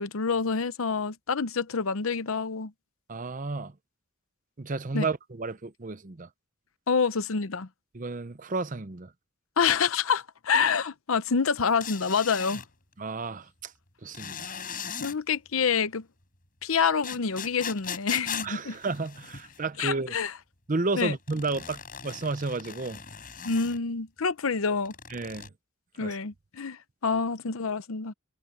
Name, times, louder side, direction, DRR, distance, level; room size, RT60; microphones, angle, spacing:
voice 1, 0.0-2.7 4.9-5.1 6.9-7.7 9.6-12.6 15.0-16.0 16.6-18.8 19.8-20.3 21.0-21.1 23.4-24.9 26.0-28.1, left 5 dB, 80° left, 0.8 m, -27 dB
voice 2, 3.1-3.7 4.6-6.3 7.9-9.1 13.0-13.7 14.0-14.5 18.4-20.2 20.7-23.0 25.1-25.5 26.0-26.2, right 3 dB, 40° right, 0.7 m, -32 dB
sound 1, 11.8-12.7 14.1-15.2 17.0-19.6 21.3-23.8 24.8-25.5, left 7 dB, 40° left, 6.1 m, -38 dB
head